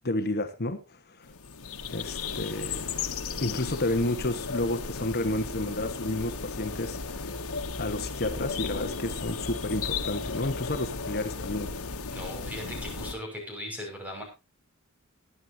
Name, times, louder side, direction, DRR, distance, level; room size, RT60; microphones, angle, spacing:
voice 1, 0.0-1.3 1.9-2.9 3.4-7.3 7.8-11.7, left 2 dB, 45° left, 9 dB, 1.4 m, -31 dB
sound 1, 1.2-13.1, left 4 dB, 85° left, 1.4 m, -35 dB
voice 2, 12.1-14.2, left 1 dB, 5° right, 1 dB, 6.1 m, -38 dB
21.0 x 9.7 x 2.8 m, 0.27 s
head